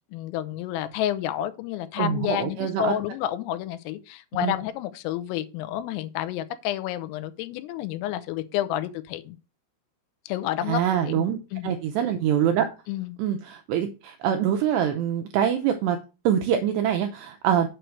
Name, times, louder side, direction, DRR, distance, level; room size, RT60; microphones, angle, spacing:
voice 1, 0.1-9.4 10.3-11.2 11.5-11.8 12.9-13.2, left 12 dB, 90° left, 3.4 m, -30 dB
voice 2, 2.0-3.0 4.4-4.5 10.7-12.7 13.2-16.0 16.3-17.7, right 9 dB, 90° right, 2.4 m, -24 dB
7.9 x 4.5 x 6.3 m
omnidirectional pair, 5.8 m